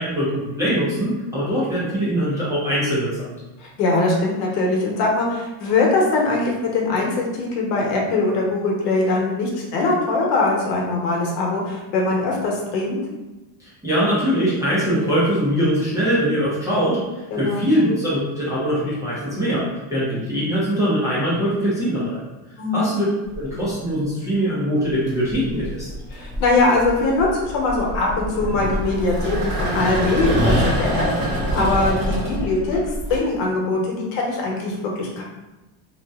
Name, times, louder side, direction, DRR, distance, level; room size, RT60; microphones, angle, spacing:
voice 1, 0.0-3.3 13.6-19.6 19.9-22.2 22.7-23.1 23.4-25.9, equal, 10° right, -11 dB, 0.4 m, -22 dB
voice 2, 3.6-13.0 17.3-17.7 22.6-22.9 26.1-35.2, left 2 dB, 75° left, -2 dB, 1.0 m, -22 dB
sound 1, 23.3-23.8 24.9-33.2, equal, 25° right, 0.8 m, -25 dB
2.7 x 2.1 x 3.4 m, 1.1 s
cardioid pair, 165°, 46 cm